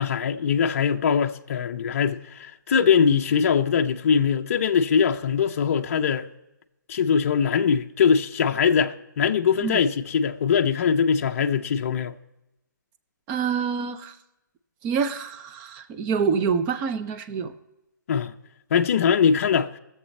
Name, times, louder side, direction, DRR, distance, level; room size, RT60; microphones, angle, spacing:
voice 1, 0.0-6.3 6.9-12.1 18.1-18.3 18.7-19.7, left 7 dB, 45° left, 0.5 m, -22 dB
voice 2, 13.3-14.2 14.8-17.5, right 6 dB, 15° right, 0.4 m, -26 dB
19.0 x 7.2 x 4.2 m
hypercardioid pair, 160°, 11 cm